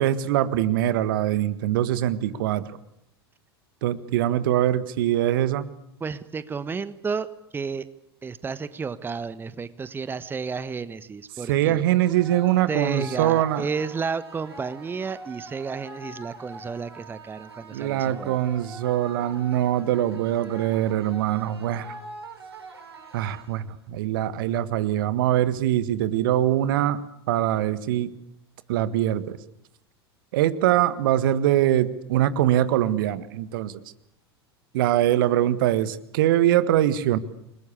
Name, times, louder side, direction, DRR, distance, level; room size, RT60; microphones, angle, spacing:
voice 1, 0.0-2.7 3.8-5.7 11.5-13.7 17.7-22.0 23.1-27.0 27.3-28.1 28.7-29.4 30.3-33.8 34.7-37.2, right 12 dB, 55° right, 15 dB, 1.6 m, -23 dB
voice 2, 6.0-7.3 7.5-7.9 8.2-11.8 12.7-18.4, right 5 dB, 15° right, 15 dB, 1.2 m, -32 dB
sound 1, 11.9-23.9, right 2 dB, 80° right, 7.8 m, -43 dB
29.0 x 20.5 x 8.5 m, 0.76 s
figure-of-eight pair, 85°, 13 cm